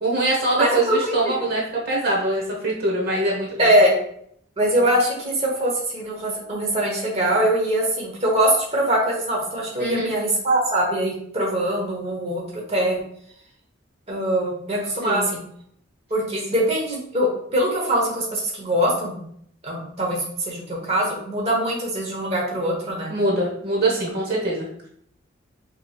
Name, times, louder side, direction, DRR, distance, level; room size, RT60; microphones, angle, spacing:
voice 1, 0.0-3.7 9.8-10.1 15.0-15.3 23.1-24.7, right 2 dB, 50° right, -2 dB, 1.1 m, -23 dB
voice 2, 0.6-1.3 3.6-3.9 4.6-13.0 14.1-15.4 16.1-19.2 19.6-23.1, right 1 dB, 30° right, -3 dB, 1.1 m, -22 dB
5.8 x 3.1 x 2.4 m, 0.66 s
head